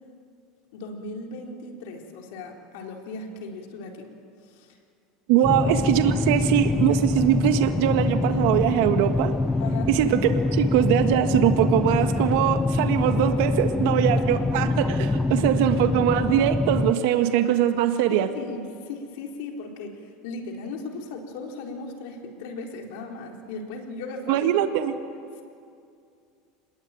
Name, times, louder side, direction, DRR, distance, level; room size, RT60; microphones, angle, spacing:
voice 1, 0.7-4.1 4.4-4.8 5.4-5.5 9.6-9.9 18.1-24.5 25.4-25.5, left 3 dB, 75° left, 2 dB, 4.1 m, -37 dB
voice 2, 5.3-9.3 9.9-10.2 10.5-18.3 24.3-24.9, right 11 dB, 70° right, 7 dB, 1.6 m, -22 dB
sound 1, 5.4-16.9, left 3 dB, 10° left, 0.6 m, -24 dB
26.5 x 21.0 x 9.2 m, 2.4 s
supercardioid pair, 135°, 0 cm